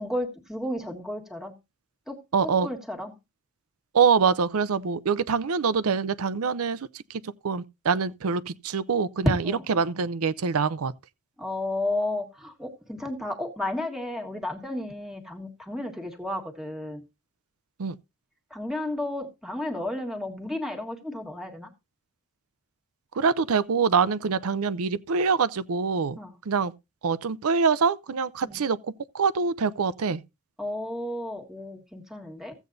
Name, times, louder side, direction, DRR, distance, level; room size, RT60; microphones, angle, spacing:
voice 1, 0.0-1.5 2.1-2.2 2.6-3.2 9.4-9.6 11.4-17.0 18.5-21.7 26.2-26.3 28.5-28.6 30.6-32.5, left 1 dB, ahead, 1.5 m, -33 dB
voice 2, 2.3-2.7 3.9-9.4 9.7-10.9 17.8-18.0 23.1-26.2 26.5-26.7 27.0-30.2, right 5 dB, 80° right, 0.6 m, -25 dB
15.5 x 8.1 x 2.6 m
head